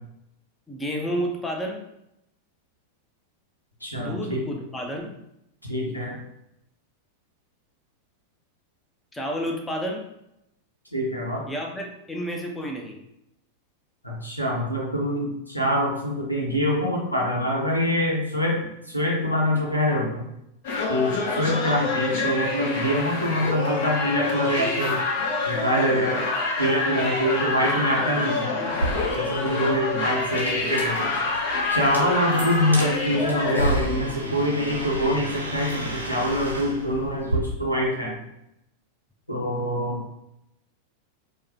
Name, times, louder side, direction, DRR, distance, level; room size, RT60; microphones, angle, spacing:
voice 1, 0.7-1.8 3.9-5.2 9.1-10.0 11.5-13.0 21.3-21.6, equal, 10° left, 1 dB, 0.5 m, -31 dB
voice 2, 3.8-4.4 5.7-6.2 10.9-11.4 14.0-20.2 20.9-25.0 25.4-26.2 26.6-28.6 29.1-31.2 31.7-38.2 39.3-40.0, equal, 85° left, -2 dB, 0.8 m, -25 dB
sound 1, 20.6-33.7, left 3 dB, 50° left, 0.8 m, -27 dB
sound 2, 28.7-37.4, right 1 dB, 85° right, 0.7 m, -32 dB
4.7 x 2.1 x 2.8 m, 0.82 s
figure-of-eight pair, 90°, 0 cm